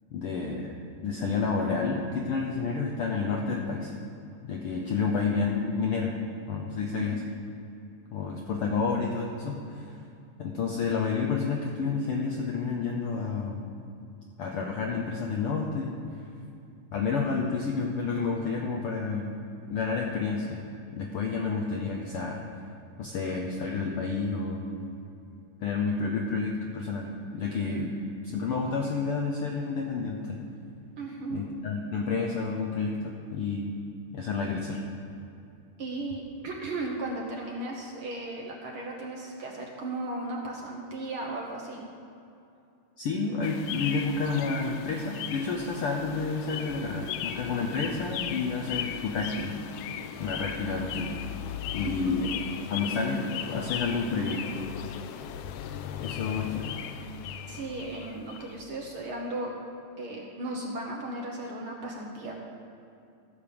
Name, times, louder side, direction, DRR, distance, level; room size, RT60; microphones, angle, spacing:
voice 1, 0.1-0.7 1.0-3.9 4.4-6.1 6.5-7.2 8.1-9.9 10.4-13.6 14.4-15.9 16.9-19.3 19.7-20.6 20.9-22.4 23.0-24.7 25.6-27.9 28.2-30.4 31.3-33.7 34.1-34.8 43.0-49.5 50.2-51.1 51.7-52.3 52.7-54.4 56.0-56.7, left 4 dB, 65° left, 0 dB, 1.4 m, -30 dB
voice 2, 31.0-31.4 35.8-41.9 51.8-52.2 57.5-59.5 60.0-62.4, right 2 dB, 55° right, -1 dB, 1.6 m, -36 dB
sound 1, 43.4-58.6, left 9 dB, 85° left, 1.3 m, -37 dB
15.0 x 5.4 x 6.9 m, 2.6 s
omnidirectional pair, 3.3 m